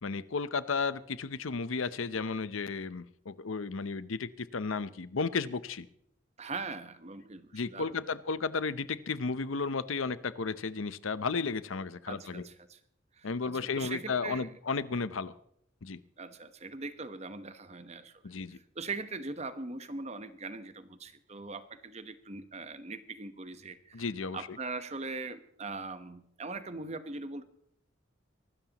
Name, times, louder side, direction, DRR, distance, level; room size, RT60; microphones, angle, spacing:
voice 1, 0.0-5.9 7.5-12.5 13.2-15.3 15.8-16.0 18.2-18.6 23.9-24.6, left 4 dB, 85° left, 16 dB, 0.7 m, -33 dB
voice 2, 6.4-8.0 12.1-12.8 13.2-14.5 16.2-18.2 18.7-24.0 24.3-27.4, right 3 dB, 35° right, 11 dB, 1.1 m, -41 dB
24.0 x 13.0 x 3.0 m, 0.71 s
head